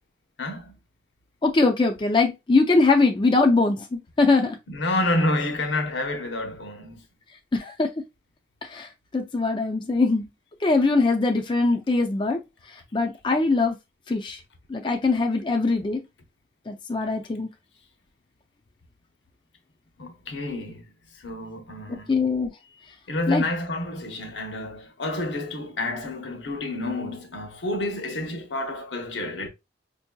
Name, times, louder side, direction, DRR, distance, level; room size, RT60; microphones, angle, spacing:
voice 1, 0.4-0.7 4.7-7.0 20.0-20.8 21.2-22.2 23.1-29.5, left 1 dB, 80° left, 0.9 m, -29 dB
voice 2, 1.4-4.6 7.5-7.9 8.6-8.9 9.1-10.2 10.6-12.4 12.9-13.8 14.1-14.4 14.7-16.0 16.7-17.5 21.9-22.5 23.3-23.4, left 3 dB, 25° left, 0.4 m, -22 dB
5.2 x 2.7 x 2.2 m
head